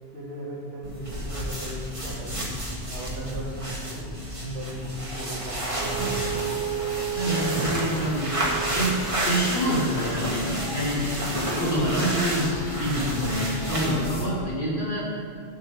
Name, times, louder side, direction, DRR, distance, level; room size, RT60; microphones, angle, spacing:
voice 1, 0.1-2.4 2.9-4.0 4.4-6.5 7.3-8.1, right 1 dB, 70° right, -5 dB, 2.7 m, -37 dB
sound 1, 0.8-14.4, right 1 dB, 25° right, 1.6 m, -31 dB
sound 2, 5.8-14.2, right 6 dB, 80° left, 2.1 m, -35 dB
voice 2, 7.1-9.0 9.3-11.0 11.6-15.0, equal, 40° left, -8 dB, 2.4 m, -27 dB
8.8 x 7.6 x 6.0 m, 2.3 s
omnidirectional pair, 1.2 m